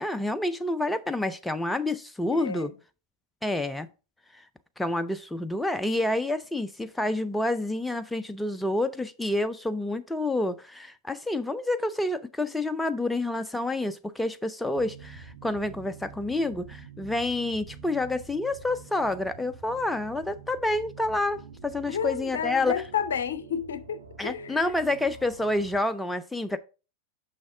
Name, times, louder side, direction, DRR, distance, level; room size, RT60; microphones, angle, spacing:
voice 1, 0.0-2.7 3.4-3.9 4.3-4.4 4.8-22.8 24.2-26.6, left 2 dB, 5° left, 0.4 m, -28 dB
voice 2, 2.3-2.7 21.9-24.6, left 7 dB, 65° left, 0.6 m, -31 dB
sound 1, 14.7-25.8, right 6 dB, 65° right, 1.4 m, -47 dB
6.3 x 5.7 x 3.6 m
figure-of-eight pair, 90°, 0 cm